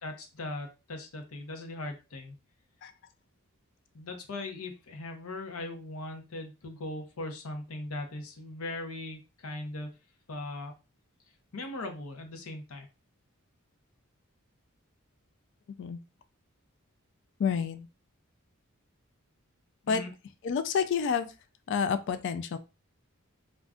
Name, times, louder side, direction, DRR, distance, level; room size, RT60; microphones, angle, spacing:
voice 1, 0.0-2.4 3.9-10.0 10.3-10.7 11.5-12.9 19.9-20.1, left 2 dB, 85° left, 5 dB, 0.7 m, -39 dB
voice 2, 17.4-17.9 19.9-20.0 20.4-21.3 21.7-22.6, left 6 dB, 60° left, 10 dB, 0.3 m, -29 dB
2.5 x 2.2 x 3.5 m, 0.29 s
head